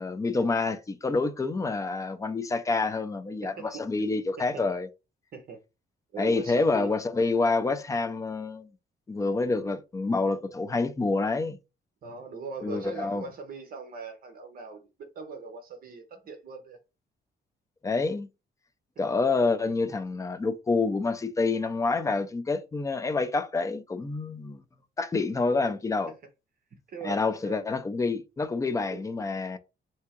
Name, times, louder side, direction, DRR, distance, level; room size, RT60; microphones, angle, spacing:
voice 1, 0.0-4.9 6.2-8.7 9.1-11.6 12.6-13.3 17.8-18.3 19.0-24.6 25.0-26.1 27.0-29.6, left 3 dB, 15° left, 0.4 m, -27 dB
voice 2, 3.5-4.6 5.3-5.6 6.1-6.9 12.0-16.8 26.1-26.2 26.9-27.6 28.9-29.1, right 4 dB, 50° right, 0.9 m, -40 dB
3.5 x 2.8 x 4.4 m
cardioid pair, 180°, 19 cm